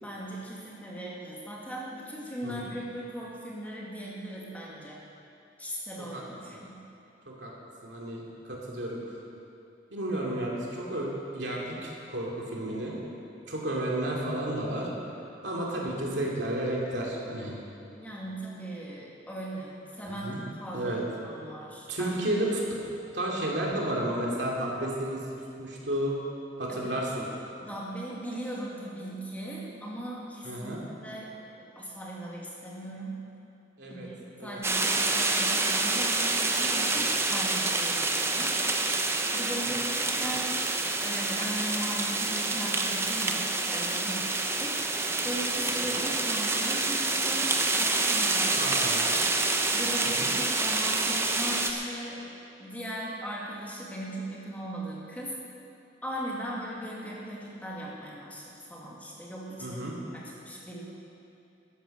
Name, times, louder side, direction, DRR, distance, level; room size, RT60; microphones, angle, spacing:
voice 1, 0.0-5.0 5.6-6.8 17.9-22.3 26.7-26.9 27.6-33.2 33.9-38.5 39.3-40.6 41.0-48.8 49.7-52.3 52.6-55.3 56.0-59.8 60.1-60.8, right 1 dB, 10° left, -5 dB, 2.2 m, -38 dB
voice 2, 7.8-9.0 9.9-11.1 11.3-13.0 13.5-14.9 15.4-17.6 20.2-20.4 20.7-21.0 21.9-22.6 23.1-25.2 25.6-26.1 26.6-27.2 30.4-30.8 33.8-34.1 34.4-34.6 36.9-37.2 48.5-49.1 50.0-50.3 59.6-60.0, right 1 dB, 65° right, -3 dB, 2.8 m, -32 dB
sound 1, 34.6-51.7, right 3 dB, 15° right, 0.8 m, -27 dB
13.5 x 10.5 x 6.7 m, 2.7 s
head